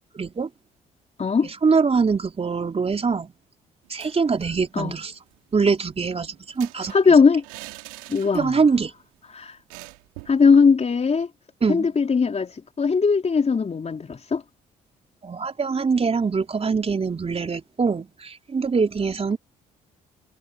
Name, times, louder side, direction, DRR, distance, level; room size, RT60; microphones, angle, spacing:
voice 1, 0.1-0.5 1.4-3.3 3.9-5.1 5.5-6.9 8.3-8.9 11.6-11.9 15.2-19.4, right 5 dB, 35° right, 4.3 m, -23 dB
sound 1, 3.8-4.6 4.9-5.0 5.3-8.8 9.0-9.2 9.7-10.4, right 25 dB, 90° right, 3.4 m, -44 dB
voice 2, 6.9-7.4 8.1-8.6 9.3-9.6 10.3-11.3 11.7-14.4, left 5 dB, 40° left, 4.4 m, -19 dB
hypercardioid pair, 55°, 18 cm